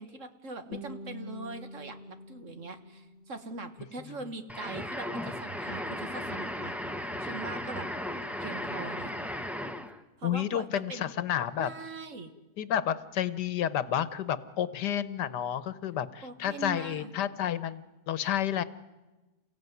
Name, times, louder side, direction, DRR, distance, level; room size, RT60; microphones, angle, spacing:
voice 1, 0.0-6.7 7.2-7.9 8.4-9.1 10.2-11.1 11.6-12.3 16.2-17.1, right 3 dB, 50° right, 9 dB, 1.8 m, -42 dB
Guitar, 0.7-3.7, left 1 dB, 45° left, 1.8 m, -45 dB
sound 1, 4.5-10.0, left 1 dB, ahead, 1.0 m, -36 dB
voice 2, 10.2-11.7 12.6-18.6, left 10 dB, 90° left, 16 dB, 1.6 m, -30 dB
29.0 x 16.0 x 9.4 m, 1.2 s
omnidirectional pair, 1.7 m